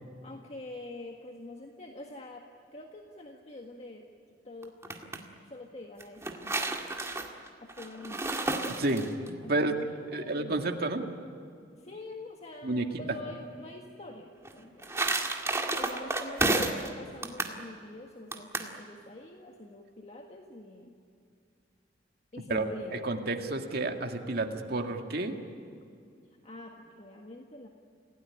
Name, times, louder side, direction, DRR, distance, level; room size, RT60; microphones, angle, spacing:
voice 1, 0.2-2.4 2.7-4.0 4.4-4.7 5.4-6.8 7.6-8.3 9.4-10.8 11.8-15.0 15.8-20.9 22.3-23.1 26.4-27.7, left 2 dB, 40° left, 2 dB, 1.7 m, -45 dB
sound 1, 4.6-5.2 6.0-9.3 14.4-16.9 17.2-17.6 18.3-18.7, right 2 dB, 15° right, 2.0 m, -31 dB
voice 2, 8.8-9.8 10.1-11.0 12.6-12.9 22.5-25.4, right 2 dB, 60° right, 3 dB, 2.1 m, -30 dB
28.0 x 17.5 x 10.0 m, 2.4 s
head